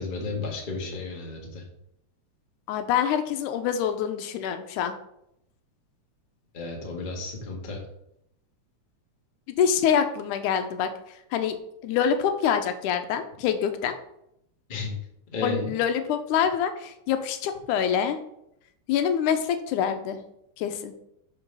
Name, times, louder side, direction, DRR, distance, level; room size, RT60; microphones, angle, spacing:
voice 1, 0.0-1.6 6.5-7.8 14.7-14.9 15.3-15.7, left 3 dB, 30° left, -1 dB, 1.0 m, -33 dB
voice 2, 2.7-4.9 9.6-10.9 11.3-11.6 11.8-14.0 15.4-18.2 18.9-20.2 20.6-20.9, left 8 dB, 85° left, 8 dB, 2.1 m, -25 dB
6.0 x 5.5 x 5.4 m, 0.79 s
omnidirectional pair, 3.5 m